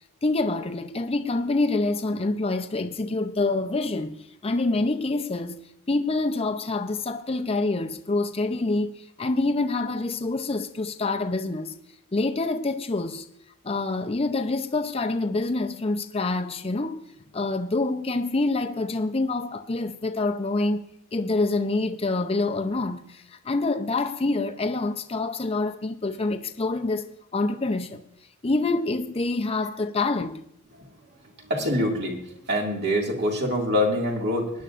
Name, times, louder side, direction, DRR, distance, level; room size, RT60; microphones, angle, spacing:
voice 1, 0.2-5.6 5.9-11.8 12.1-13.2 13.6-17.0 17.3-20.8 21.1-28.0 28.4-30.4, left 2 dB, 25° left, 0.6 m, -26 dB
voice 2, 31.5-32.2 32.5-34.5, left 1 dB, 50° right, 2.2 m, -24 dB
21.0 x 10.5 x 2.5 m
head